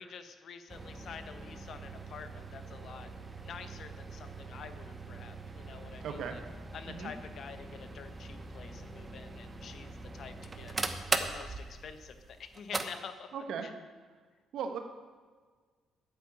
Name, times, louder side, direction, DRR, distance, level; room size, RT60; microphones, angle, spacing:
voice 1, 0.0-3.1 3.4-6.4 6.7-10.7 11.1-13.3 13.6-13.7, left 6 dB, 60° left, 10 dB, 1.1 m, -48 dB
sound 1, 0.7-12.9, right 3 dB, 25° right, 1.0 m, -41 dB
voice 2, 6.0-6.4 6.9-7.1 13.3-13.7 14.5-14.8, right 6 dB, 75° right, 6 dB, 1.5 m, -37 dB
9.3 x 8.0 x 8.7 m, 1.5 s
cardioid pair, 90°, 0 cm